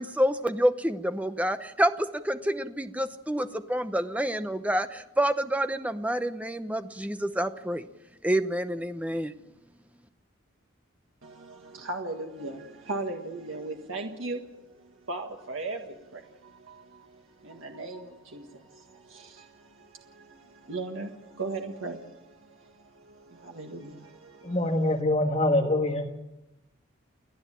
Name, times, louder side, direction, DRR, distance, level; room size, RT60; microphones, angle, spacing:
voice 1, 0.0-7.9 8.2-9.3, equal, 5° right, 9 dB, 0.8 m, -28 dB
voice 2, 11.2-25.0, right 2 dB, 80° right, 3 dB, 1.7 m, -39 dB
voice 3, 24.4-26.1, left 1 dB, 30° left, 4 dB, 1.6 m, -24 dB
30.0 x 10.5 x 8.9 m, 0.95 s
head